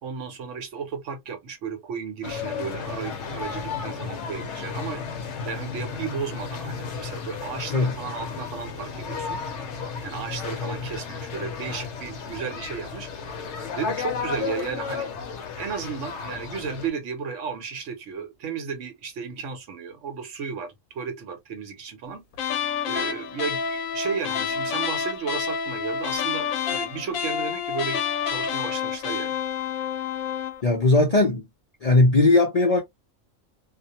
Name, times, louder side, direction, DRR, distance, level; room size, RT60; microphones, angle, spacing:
voice 1, 0.0-5.0 5.4-9.4 9.8-13.1 13.8-15.1 15.6-22.2 22.9-28.0 28.3-29.4, right 6 dB, 70° right, 1.1 m, -34 dB
sound 1, 2.2-16.9, left 5 dB, 65° left, 0.9 m, -33 dB
sound 2, 22.3-30.6, left 7 dB, 85° left, 1.0 m, -28 dB
voice 2, 30.6-31.4 31.8-32.8, left 2 dB, 50° left, 0.5 m, -18 dB
2.4 x 2.1 x 2.7 m
omnidirectional pair, 1.4 m